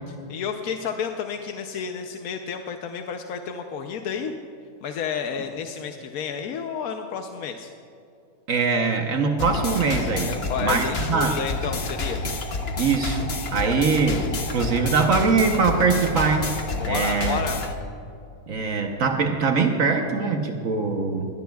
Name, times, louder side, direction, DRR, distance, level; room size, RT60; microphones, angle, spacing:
voice 1, 0.3-4.3 4.8-7.7 10.2-12.2 16.8-17.6, left 6 dB, 85° left, 4 dB, 1.2 m, -31 dB
voice 2, 8.5-10.3 10.6-11.4 12.8-16.6 16.9-17.4 18.5-21.3, right 4 dB, 70° right, 3 dB, 1.3 m, -22 dB
sound 1, 9.4-17.7, left 3 dB, 50° left, 1.2 m, -29 dB
22.0 x 16.5 x 2.3 m, 2.5 s
omnidirectional pair, 1.5 m